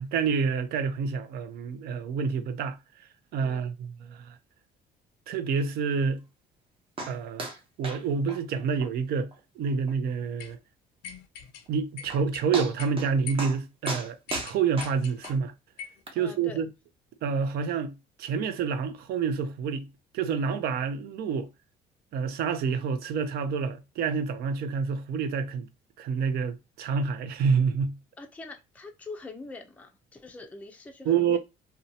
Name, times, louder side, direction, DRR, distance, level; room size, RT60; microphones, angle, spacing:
voice 1, 0.0-4.4 5.3-6.2 7.1-7.5 7.8-10.6 11.7-15.5 16.1-16.7 17.2-19.9 20.1-21.5 22.1-25.7 26.0-28.0 31.1-31.4, right 6 dB, 70° right, 0.5 m, -28 dB
sound 1, 7.0-7.1 7.4-7.6 7.8-8.0 8.3-8.4 8.8-8.9 9.3-9.4 9.9-10.0 11.7-11.8 12.1-12.2 12.5-13.1 13.4-13.6 13.9-15.3 16.1-16.2, right 2 dB, 30° right, 0.8 m, -35 dB
sound 2, 10.4-10.5 11.0-11.6 12.0-12.5 12.8-12.9 13.3-13.5 13.8-13.9 14.3-15.4 15.8-16.0, left 8 dB, 85° left, 0.5 m, -41 dB
voice 2, 16.2-16.6 28.2-31.4, left 3 dB, 10° left, 0.4 m, -43 dB
2.6 x 2.2 x 2.6 m
cardioid pair, 110°, 17 cm